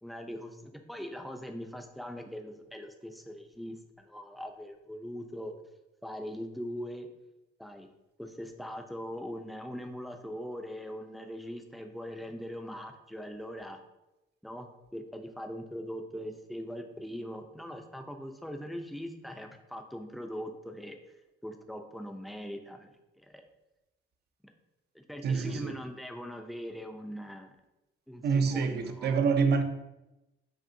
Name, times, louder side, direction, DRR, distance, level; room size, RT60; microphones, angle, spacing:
voice 1, 0.0-5.5 6.0-7.1 7.6-7.9 8.2-13.8 14.4-21.0 21.4-23.4 24.9-27.5 28.1-28.2 28.5-29.2, equal, ahead, 0.5 m, -41 dB
voice 2, 25.2-25.7 28.2-29.6, right 5 dB, 55° right, 0.5 m, -26 dB
5.2 x 2.7 x 2.7 m
cardioid pair, 90°, 20 cm